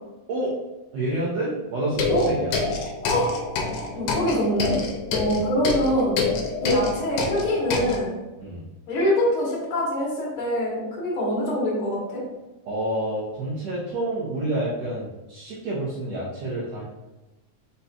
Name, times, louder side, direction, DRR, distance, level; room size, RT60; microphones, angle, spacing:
voice 1, 0.9-2.6 5.2-5.4 8.4-8.6 12.7-16.8, right 1 dB, 75° right, -7 dB, 1.5 m, -28 dB
sound 1, 1.9-8.0, left 4 dB, 80° left, 2.1 m, -27 dB
voice 2, 3.9-4.7 5.1-6.2 6.6-8.1 8.9-12.2, left 1 dB, 60° left, -4 dB, 1.5 m, -24 dB
5.3 x 4.1 x 2.3 m, 1.1 s
omnidirectional pair, 4.1 m